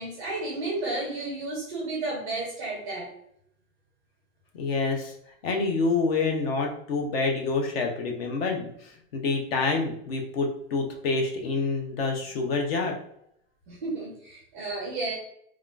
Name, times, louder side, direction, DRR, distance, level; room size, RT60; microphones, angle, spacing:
voice 1, 0.0-3.1 13.7-15.1, right 2 dB, 15° right, -3 dB, 0.4 m, -32 dB
voice 2, 4.5-5.1 5.4-13.0, left 3 dB, 45° left, 2 dB, 0.6 m, -27 dB
3.5 x 2.3 x 2.3 m, 0.71 s
supercardioid pair, 165°, 42 cm